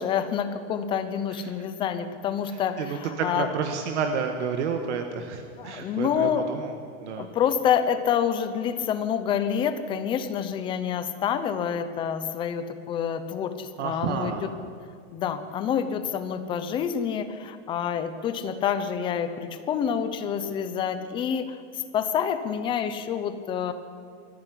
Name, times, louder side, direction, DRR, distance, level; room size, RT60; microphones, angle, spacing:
voice 1, 0.0-3.5 5.6-6.5 7.2-14.5 15.1-23.7, left 8 dB, 15° left, 10 dB, 0.6 m, -27 dB
voice 2, 2.8-6.7 7.0-7.3 13.8-14.4, right 6 dB, 70° right, 5 dB, 1.7 m, -30 dB
19.5 x 14.5 x 9.8 m, 2.2 s
supercardioid pair, 180°, 36 cm